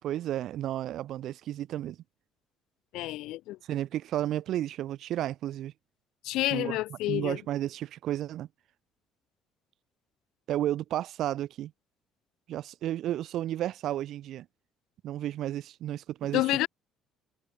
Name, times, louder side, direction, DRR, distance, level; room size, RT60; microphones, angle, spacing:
voice 1, 0.0-2.0 3.7-5.7 6.5-8.5 10.5-11.7 12.5-14.5 15.0-16.6, right 12 dB, 60° right, 2.2 m, -32 dB
voice 2, 2.9-3.6 6.2-7.4 16.3-16.7, left 17 dB, 70° left, 2.6 m, -29 dB
hypercardioid pair, 55°, 0 cm